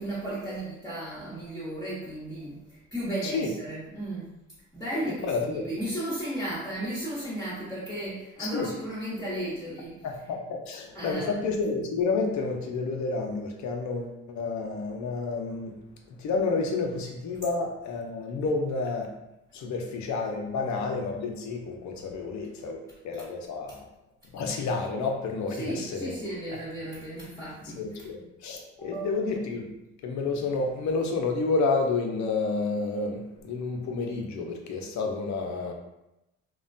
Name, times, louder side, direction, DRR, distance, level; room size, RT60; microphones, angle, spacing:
voice 1, 0.0-4.3 4.7-10.1 10.9-11.4 23.7-23.8 25.5-28.0 28.8-29.1, right 1 dB, 10° left, -9 dB, 1.0 m, -35 dB
voice 2, 5.2-5.7 8.4-8.7 10.0-15.8 16.2-19.1 19.5-23.9 24.3-26.1 27.7-29.7 30.0-35.7, left 4 dB, 65° left, 2 dB, 0.6 m, -30 dB
3.0 x 2.1 x 2.6 m, 0.91 s
cardioid pair, 80°, 31 cm